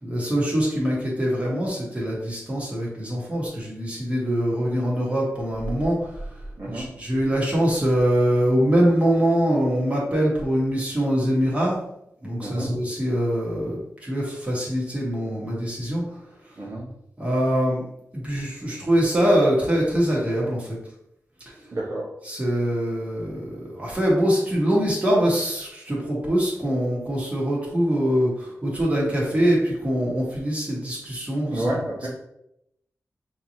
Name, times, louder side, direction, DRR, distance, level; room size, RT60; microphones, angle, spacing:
voice 1, 0.0-6.3 6.7-11.8 12.2-16.2 16.5-16.6 17.2-17.9 18.1-20.7 22.2-31.7, equal, 20° right, -5 dB, 1.7 m, -23 dB
voice 2, 6.6-6.9 12.4-12.7 16.6-16.8 21.7-22.1 31.5-32.1, right 1 dB, 55° right, -6 dB, 1.2 m, -29 dB
5.8 x 3.1 x 2.9 m, 0.80 s
wide cardioid pair, 95°, 6 cm